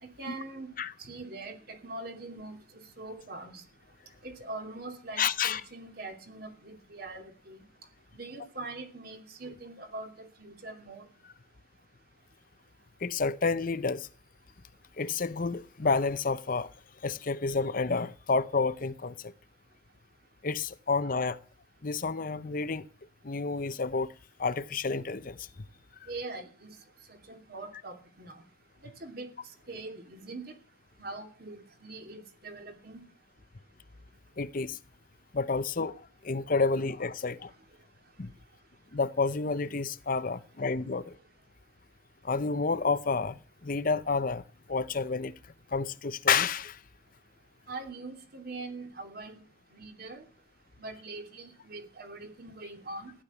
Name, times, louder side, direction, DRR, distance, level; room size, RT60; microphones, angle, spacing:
voice 1, 0.0-0.7 1.0-3.6 4.2-7.6 8.1-11.0 26.1-26.7 27.1-28.4 29.0-29.3 29.7-30.4 31.0-33.0 47.7-49.4 49.7-50.2 50.8-53.1, right 2 dB, 50° right, 2.8 m, -42 dB
voice 2, 5.2-5.6 13.0-14.1 15.0-16.7 17.0-19.1 20.4-21.4 21.8-22.8 23.2-24.1 24.4-25.4 34.4-34.8 35.3-37.5 38.2-38.3 38.9-41.0 42.2-44.4 44.7-45.3 45.7-46.8, left 4 dB, 45° left, 0.7 m, -29 dB
15.5 x 11.5 x 7.1 m
head